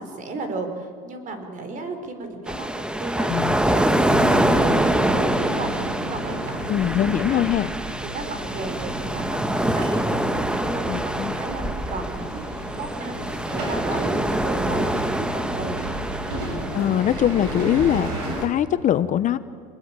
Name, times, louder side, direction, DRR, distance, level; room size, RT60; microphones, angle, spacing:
voice 1, 0.0-3.4 3.6-6.7 7.3-7.4 8.0-15.8, right 3 dB, 40° right, 7 dB, 4.6 m, -35 dB
sound 1, 2.5-18.5, right 1 dB, 5° right, 1.3 m, -25 dB
voice 2, 3.2-3.5 6.7-7.7 10.9-11.4 16.7-19.4, left 11 dB, 40° left, 13 dB, 0.9 m, -22 dB
sound 2, 4.1-18.4, right 2 dB, 85° right, 7.8 m, -33 dB
26.0 x 20.0 x 9.0 m, 2.1 s
supercardioid pair, 120°, 20 cm